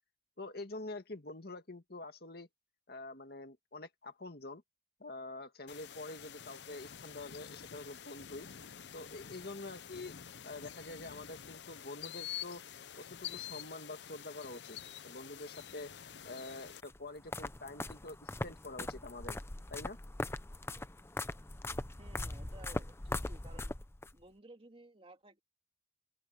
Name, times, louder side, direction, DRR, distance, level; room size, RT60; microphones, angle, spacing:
voice 1, 0.4-2.5 2.9-4.6 5.0-8.5 8.9-10.1 10.4-12.6 13.0-14.8 15.0-15.9 16.3-19.4 19.7-20.0, left 2 dB, 60° left, 2.0 m, -46 dB
sound 1, 5.7-16.8, left 9 dB, 80° left, 0.7 m, -48 dB
sound 2, 16.8-24.1, left 2 dB, 15° left, 0.6 m, -41 dB
voice 2, 22.0-23.8 24.1-25.4, right 2 dB, 30° right, 2.1 m, -56 dB
open air
head